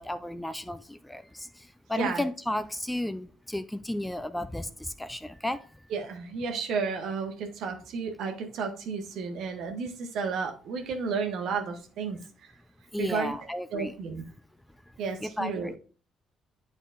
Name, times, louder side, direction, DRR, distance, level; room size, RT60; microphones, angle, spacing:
voice 1, 0.0-1.5 1.9-4.7 5.0-5.6 12.9-13.9 15.2-15.7, left 1 dB, 10° left, 12 dB, 0.5 m, -33 dB
voice 2, 5.9-12.6 13.0-14.2 15.0-15.7, right 5 dB, 65° right, 4 dB, 1.1 m, -32 dB
11.0 x 3.9 x 2.5 m, 0.39 s
figure-of-eight pair, 45°, 0 cm